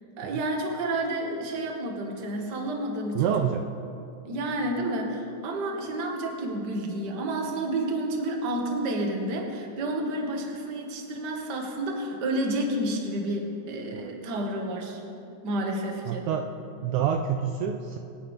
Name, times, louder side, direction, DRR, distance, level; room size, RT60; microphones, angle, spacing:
voice 1, 0.2-3.5 4.2-15.0 15.4-16.3, right 1 dB, 45° right, 1 dB, 1.6 m, -30 dB
voice 2, 3.2-3.7 13.9-14.1 16.1-16.5 16.8-18.0, right 8 dB, 80° right, 5 dB, 1.9 m, -27 dB
25.0 x 9.8 x 3.4 m, 2.7 s
omnidirectional pair, 3.7 m